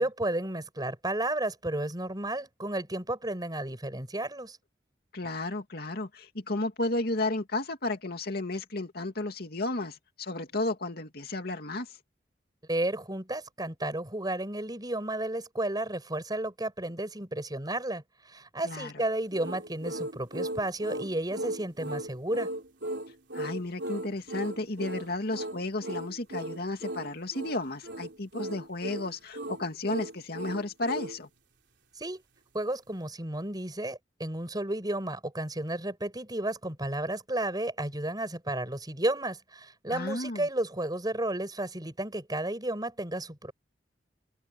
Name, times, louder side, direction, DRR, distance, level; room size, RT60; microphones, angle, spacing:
voice 1, 0.0-4.6 12.7-22.5 32.0-32.2 32.5-43.5, right 1 dB, 25° right, 7.6 m, -32 dB
voice 2, 5.1-11.9 18.6-18.9 23.3-31.3 39.9-40.5, left 2 dB, 60° left, 2.4 m, -33 dB
sound 1, 19.3-31.2, right 1 dB, 75° right, 3.6 m, -37 dB
head